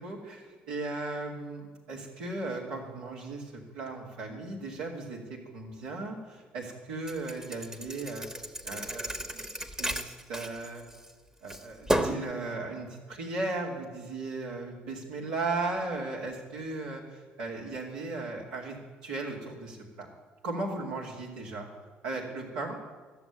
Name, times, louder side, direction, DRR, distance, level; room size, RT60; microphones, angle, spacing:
voice 1, 0.0-8.3 8.6-9.4 9.8-10.8 11.4-18.8 19.0-20.1 20.4-21.7 22.0-22.8, right 3 dB, 80° right, -3 dB, 2.5 m, -36 dB
Thump thud, 7.1-11.1 11.5-12.3, right 1 dB, 15° right, 1.3 m, -33 dB
13.5 x 7.1 x 9.5 m, 1.4 s
hypercardioid pair, 55°, 4 cm